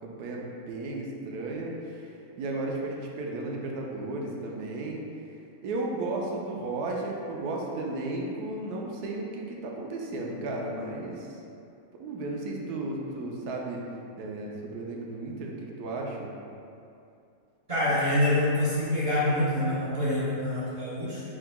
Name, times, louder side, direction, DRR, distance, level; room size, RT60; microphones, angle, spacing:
voice 1, 0.0-5.0 5.6-11.4 12.0-13.8 14.2-16.3, right 2 dB, 85° right, -1 dB, 1.1 m, -34 dB
voice 2, 17.7-21.2, left 1 dB, 25° right, -11 dB, 0.7 m, -26 dB
4.6 x 3.6 x 2.2 m, 2.6 s
omnidirectional pair, 1.6 m